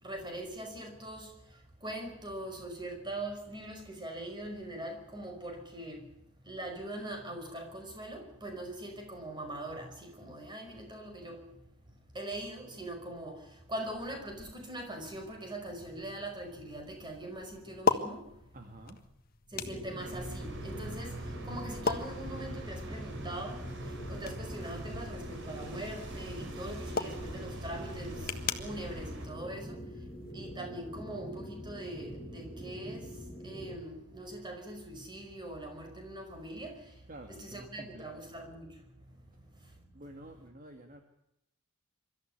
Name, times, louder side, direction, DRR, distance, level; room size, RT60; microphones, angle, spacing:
voice 1, 0.0-1.3 1.8-6.0 6.5-11.4 12.1-13.4 13.7-18.3 19.5-21.2 21.5-23.6 24.1-29.8 30.3-33.1 33.4-36.8 37.3-38.7, right 1 dB, 20° right, 5.3 m, -42 dB
sound 1, 15.1-30.3, left 5 dB, 40° left, 1.6 m, -40 dB
voice 2, 18.5-19.0 37.1-38.2 39.9-41.0, right 1 dB, 40° right, 2.1 m, -49 dB
sound 2, 19.5-33.8, equal, 5° left, 5.2 m, -45 dB
sound 3, 20.0-29.3, right 1 dB, 55° right, 4.1 m, -43 dB
24.5 x 14.0 x 7.9 m
head